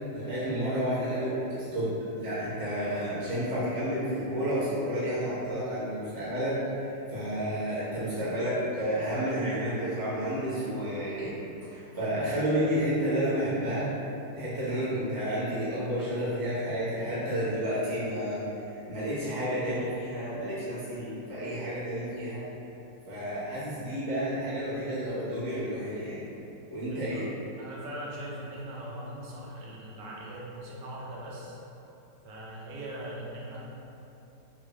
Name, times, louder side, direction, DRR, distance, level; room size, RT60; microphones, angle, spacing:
voice 1, 0.1-11.3 11.6-13.9 14.3-22.4 23.1-26.3 26.7-27.2, equal, 35° right, -11 dB, 0.3 m, -31 dB
voice 2, 26.9-27.3 27.6-31.6 32.2-33.6, right 1 dB, 75° right, -5 dB, 1.2 m, -40 dB
3.5 x 2.2 x 3.0 m, 2.9 s
omnidirectional pair, 2.0 m